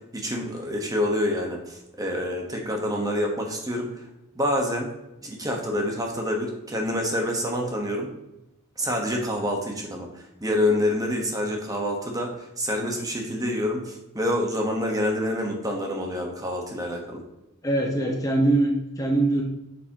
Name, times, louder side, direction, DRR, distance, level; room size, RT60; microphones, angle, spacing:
voice 1, 0.1-4.0 4.3-4.9 5.2-8.1 8.8-17.2, left 1 dB, 15° right, 1 dB, 1.3 m, -27 dB
voice 2, 17.6-19.4, right 2 dB, 15° left, 0 dB, 1.0 m, -22 dB
8.1 x 7.2 x 3.0 m, 0.92 s
head